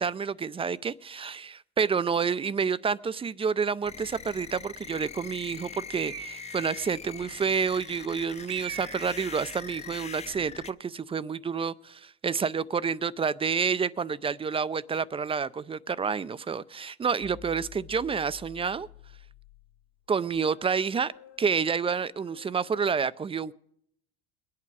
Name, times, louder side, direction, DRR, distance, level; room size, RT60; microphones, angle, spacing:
voice 1, 0.0-18.9 20.1-21.1 21.4-23.5, right 6 dB, 20° right, 18 dB, 0.4 m, -29 dB
sound 1, 3.8-10.7, left 6 dB, 20° left, 0.6 m, -42 dB
Bird, 6.0-6.8 8.5-9.4, right 13 dB, 65° right, 1.2 m, -40 dB
sound 2, 17.2-23.0, left 8 dB, 65° left, 1.8 m, -51 dB
22.0 x 8.6 x 4.7 m, 0.69 s
hypercardioid pair, 75°, 32 cm